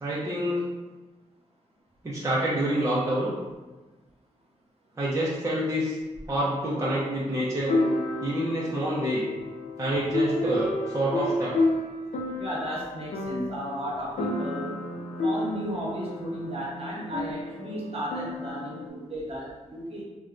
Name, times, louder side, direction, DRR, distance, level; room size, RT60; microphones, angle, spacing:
voice 1, 0.0-0.6 2.0-3.3 5.0-6.0 6.3-7.7 8.2-9.3 9.8-11.5, right 1 dB, 25° right, -7 dB, 0.5 m, -27 dB
sound 1, 6.2-6.3 7.7-18.9, left 2 dB, 70° left, 0.5 m, -31 dB
voice 2, 12.4-14.7 15.2-20.0, equal, 50° right, -4 dB, 0.8 m, -34 dB
4.0 x 2.2 x 2.4 m, 1.2 s
wide cardioid pair, 140°, 12 cm